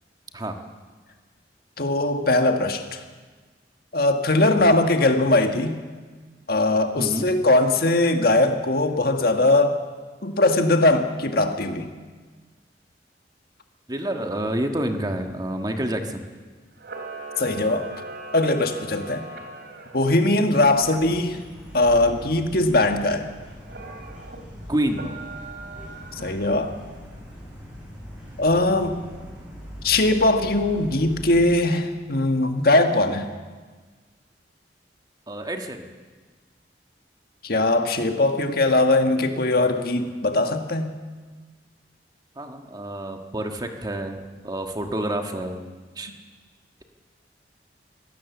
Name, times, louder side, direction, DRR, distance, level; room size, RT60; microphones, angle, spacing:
voice 1, 1.8-3.0 3.9-5.8 6.5-9.8 10.2-11.9 17.4-17.9 18.3-19.2 19.9-21.4 21.7-23.3 26.2-26.7 28.4-29.0 29.8-33.2 37.4-40.9, left 2 dB, 55° left, 6 dB, 1.6 m, -20 dB
voice 2, 7.0-7.3 13.9-16.2 24.7-25.1 35.3-35.9 42.3-45.7 45.9-46.1, right 1 dB, 20° right, 5 dB, 1.6 m, -28 dB
Camera, 16.8-20.1 23.6-24.4 24.9-26.7, right 3 dB, 60° right, 2.8 m, -39 dB
sound 1, 20.7-31.6, equal, 5° right, 6.3 m, -41 dB
24.0 x 16.5 x 7.2 m, 1.4 s
head